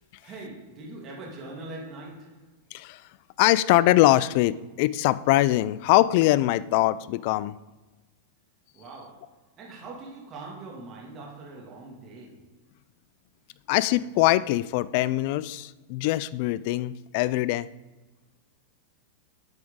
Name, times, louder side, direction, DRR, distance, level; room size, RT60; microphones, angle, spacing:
voice 1, 0.2-2.5 8.7-12.5, right 2 dB, 30° right, -2 dB, 2.0 m, -42 dB
voice 2, 3.4-7.6 13.7-17.7, left 16 dB, 50° left, 18 dB, 0.3 m, -22 dB
9.3 x 7.8 x 3.7 m, 1.2 s
supercardioid pair, 150°, 0 cm